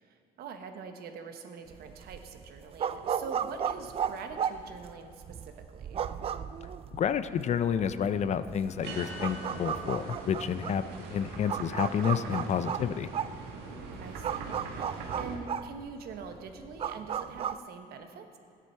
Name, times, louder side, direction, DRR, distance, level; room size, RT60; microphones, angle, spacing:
voice 1, 0.0-6.1 14.0-18.4, right 5 dB, 70° right, 6 dB, 1.1 m, -44 dB
sound 1, 1.7-17.6, right 8 dB, 35° right, 0.3 m, -35 dB
voice 2, 6.9-10.9 11.1-13.1, left 8 dB, 45° left, 13 dB, 0.5 m, -29 dB
sound 2, 8.8-15.4, right 3 dB, 90° right, 1.6 m, -42 dB
13.5 x 9.9 x 4.5 m, 2.3 s
cardioid pair, 110°, 17 cm